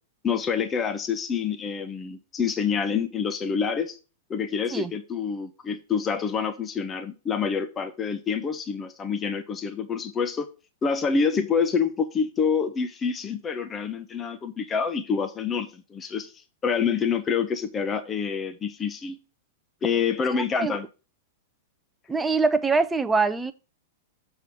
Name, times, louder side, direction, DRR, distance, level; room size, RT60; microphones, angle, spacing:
voice 1, 0.2-4.0 4.3-10.5 10.8-16.3 16.6-19.2 19.8-20.9, left 6 dB, 20° left, 1.0 m, -27 dB
voice 2, 20.4-20.8 22.1-23.5, right 4 dB, 10° right, 0.7 m, -24 dB
7.0 x 4.1 x 6.3 m
hypercardioid pair, 120°, 0 cm